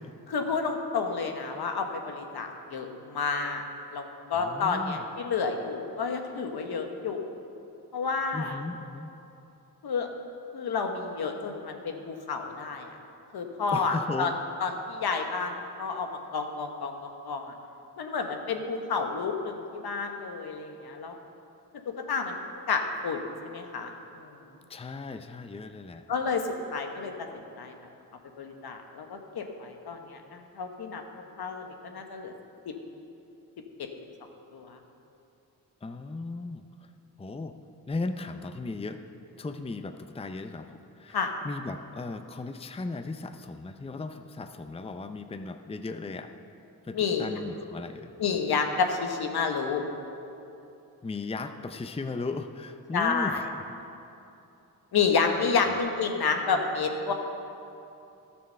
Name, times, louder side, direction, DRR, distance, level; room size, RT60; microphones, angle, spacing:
voice 1, 0.3-3.6 3.9-4.0 4.3-7.3 7.9-8.6 9.8-10.1 10.5-12.9 13.3-14.3 14.6-17.5 18.0-21.1 21.9-22.3 22.7-24.3 26.1-26.4 26.7-27.3 27.6-27.7 28.4-31.0 31.4-32.3 34.5-34.8 41.1-41.3 46.9-47.3 48.2-49.8 52.9-53.4 54.9-57.1, left 5 dB, 70° left, 4 dB, 1.3 m, -30 dB
voice 2, 4.3-5.0 8.3-9.1 13.7-14.3 24.7-26.0 35.8-36.7 37.2-37.5 37.9-39.0 39.4-46.3 46.8-48.1 51.0-53.8 55.7-55.8, left 3 dB, 15° left, 8 dB, 0.6 m, -36 dB
12.5 x 7.0 x 6.7 m, 2.8 s
cardioid pair, 55°, 39 cm